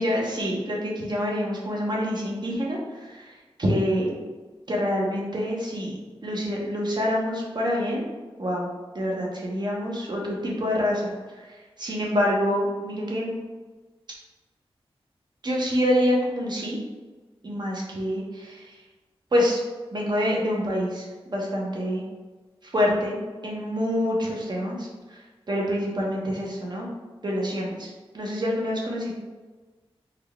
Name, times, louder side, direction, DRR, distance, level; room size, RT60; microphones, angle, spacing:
voice 1, 0.0-3.3 3.6-4.2 4.7-8.1 8.4-8.7 8.9-11.4 11.8-13.3 15.4-16.8 17.4-18.8 19.3-19.6 19.9-22.0 22.6-23.2 23.4-25.2 25.5-26.9 27.2-27.9 28.1-29.1, equal, 45° right, -2 dB, 0.9 m, -26 dB
3.8 x 2.3 x 3.4 m, 1.3 s
wide cardioid pair, 90°, 10 cm